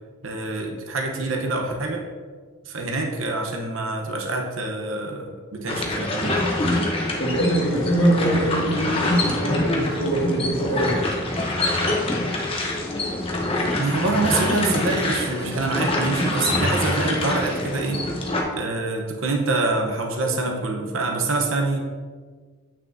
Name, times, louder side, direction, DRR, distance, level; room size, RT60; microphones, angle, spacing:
voice 1, 0.2-2.0 2.6-6.4 13.8-18.1 18.5-21.8, right 3 dB, 65° right, 2 dB, 0.8 m, -26 dB
sound 1, 5.7-18.4, left 1 dB, 25° left, 0.8 m, -25 dB
voice 2, 7.2-11.1, right 1 dB, 60° left, -3 dB, 1.7 m, -23 dB
8.6 x 6.0 x 2.6 m, 1.5 s
head